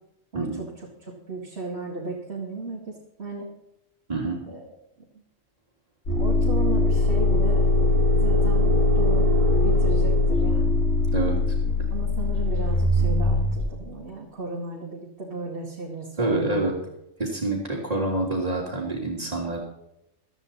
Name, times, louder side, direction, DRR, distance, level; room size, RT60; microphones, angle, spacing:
voice 1, 0.3-0.6 4.1-4.4 11.1-11.4 16.2-16.8 17.2-19.6, right 2 dB, 30° right, -5 dB, 2.9 m, -27 dB
voice 2, 1.0-3.5 4.5-4.6 5.0-5.1 6.2-9.3 9.6-10.8 11.9-16.8, right 2 dB, 55° right, -4 dB, 2.7 m, -35 dB
sound 1, 6.1-13.6, left 2 dB, 80° left, 4.4 m, -21 dB
15.5 x 13.0 x 4.2 m, 0.83 s
omnidirectional pair, 1.3 m